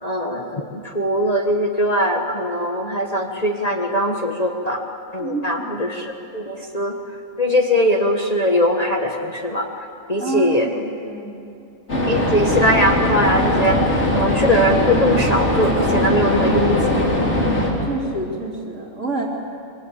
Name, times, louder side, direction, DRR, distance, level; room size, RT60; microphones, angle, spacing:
voice 1, 0.0-4.8 5.1-7.0 7.4-9.7 10.1-10.7 12.1-13.8 14.1-17.1, equal, 30° left, 1 dB, 1.6 m, -21 dB
voice 2, 5.2-5.9 10.2-11.4 17.8-19.3, right 3 dB, 65° right, 0 dB, 3.8 m, -28 dB
sound 1, 11.9-17.7, left 1 dB, 60° left, 4.2 m, -20 dB
25.5 x 23.0 x 8.4 m, 2.7 s
omnidirectional pair, 1.4 m